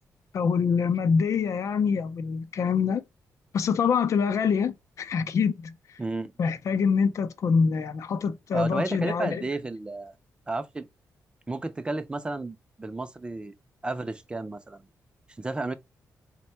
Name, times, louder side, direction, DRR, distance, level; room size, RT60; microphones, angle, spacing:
voice 1, 0.3-3.0 3.5-5.7 6.4-9.4, left 6 dB, 60° left, 0.5 m, -25 dB
voice 2, 6.0-6.3 8.5-10.1 10.5-10.9 11.5-13.5 13.8-14.8 15.4-15.8, right 2 dB, 15° right, 0.5 m, -32 dB
4.1 x 2.2 x 4.2 m
cardioid pair, 120°, 6 cm